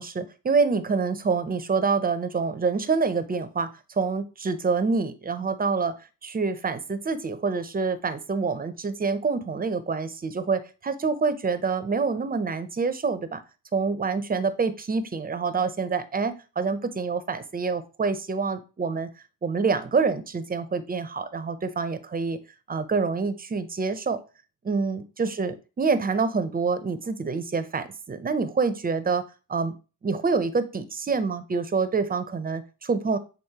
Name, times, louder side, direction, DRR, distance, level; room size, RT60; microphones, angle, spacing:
voice 1, 0.0-6.0 6.2-13.4 13.7-19.1 19.4-22.4 22.7-24.2 24.6-29.2 29.5-29.7 30.0-33.2, right 4 dB, 20° right, 11 dB, 0.6 m, -26 dB
8.1 x 4.2 x 2.8 m, 0.32 s
cardioid pair, 130°, 41 cm